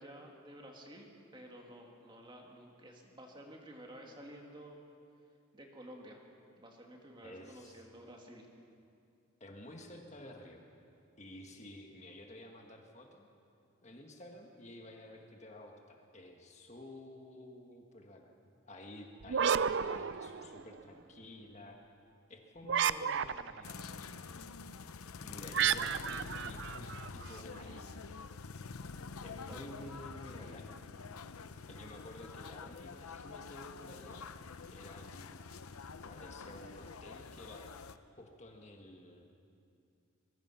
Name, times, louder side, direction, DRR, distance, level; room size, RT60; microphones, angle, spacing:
voice 1, 0.0-4.8 5.5-6.2 6.6-8.5 29.5-30.6, equal, 20° right, 1 dB, 2.2 m, -52 dB
voice 2, 7.2-7.8 9.4-10.6 11.2-13.3 13.8-18.2 18.6-21.8 22.3-23.9 24.4-24.5 25.2-28.2 29.2-30.7 31.7-34.3 34.7-35.5 36.1-37.7 38.2-39.2, left 1 dB, 30° left, 2 dB, 1.6 m, -51 dB
sound 1, 19.2-20.8 22.6-23.7 25.5-27.4, right 7 dB, 55° right, 0.5 m, -32 dB
sound 2, 23.6-38.0, left 5 dB, 90° left, 0.8 m, -47 dB
23.0 x 21.5 x 5.8 m, 2.5 s
head